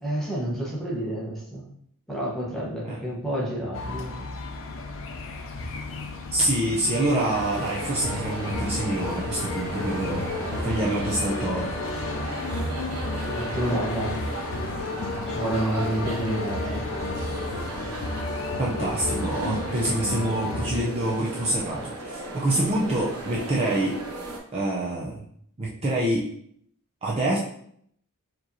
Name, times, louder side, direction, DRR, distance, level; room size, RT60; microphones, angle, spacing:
voice 1, 0.0-1.6 2.1-4.3 13.3-14.2 15.3-16.9, right 1 dB, ahead, -5 dB, 1.0 m, -29 dB
sound 1, 3.7-20.8, left 2 dB, 60° left, 0.5 m, -32 dB
voice 2, 6.3-11.8 18.6-24.0 24.5-25.2 25.6-26.2 27.0-27.4, right 1 dB, 25° right, -4 dB, 0.5 m, -26 dB
sound 2, 7.1-24.4, right 2 dB, 75° right, 0.8 m, -36 dB
4.6 x 3.0 x 2.7 m, 0.66 s
head